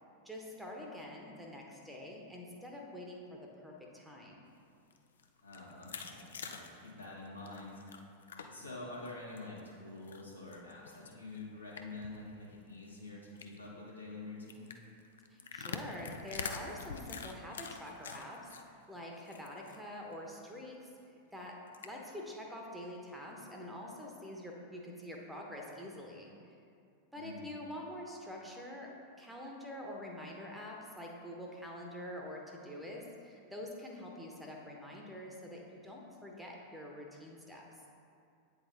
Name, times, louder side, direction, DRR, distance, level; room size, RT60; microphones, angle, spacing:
voice 1, 0.2-4.5 15.3-20.9 21.3-26.3 27.1-28.9 29.2-37.7, left 1 dB, 5° right, -1 dB, 0.9 m, -46 dB
sound 1, 4.8-8.7 9.1-9.6 10.1-12.2 12.5-12.6 12.8-13.0 13.4-13.7 14.5-18.6 19.0-19.8 20.1-20.2 20.6-20.7 21.7-21.9, left 5 dB, 65° left, 0.4 m, -45 dB
voice 2, 5.4-8.1 8.5-14.7 27.1-27.5, left 2 dB, 80° left, -5 dB, 1.3 m, -47 dB
8.5 x 4.0 x 3.9 m, 2.5 s
figure-of-eight pair, 90°, 0 cm